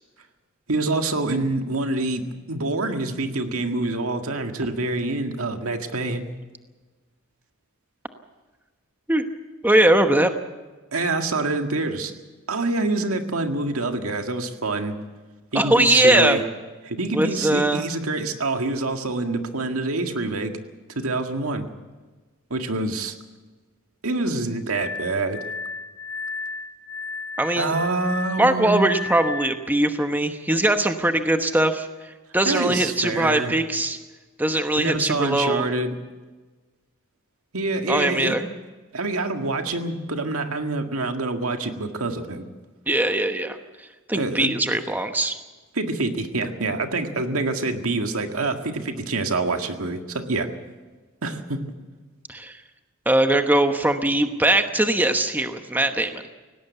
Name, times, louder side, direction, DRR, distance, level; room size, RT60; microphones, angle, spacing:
voice 1, 0.7-6.2 10.9-12.1 12.5-15.0 15.5-16.4 16.9-20.5 21.0-21.7 22.5-23.1 24.0-25.4 27.6-28.8 32.5-33.5 34.8-36.0 37.5-38.4 38.9-42.5 44.1-44.5 45.7-50.5 51.2-51.6, right 2 dB, 85° right, 5 dB, 1.9 m, -26 dB
voice 2, 9.6-10.3 15.5-16.4 17.1-17.9 27.4-27.7 28.4-34.0 34.4-35.6 37.9-38.4 42.9-43.6 44.1-45.4 52.3-52.6 53.1-56.2, right 1 dB, 10° right, 7 dB, 1.0 m, -21 dB
Glass, 24.7-29.7, left 4 dB, 65° left, 4.5 m, -34 dB
18.0 x 18.0 x 8.2 m, 1.3 s
head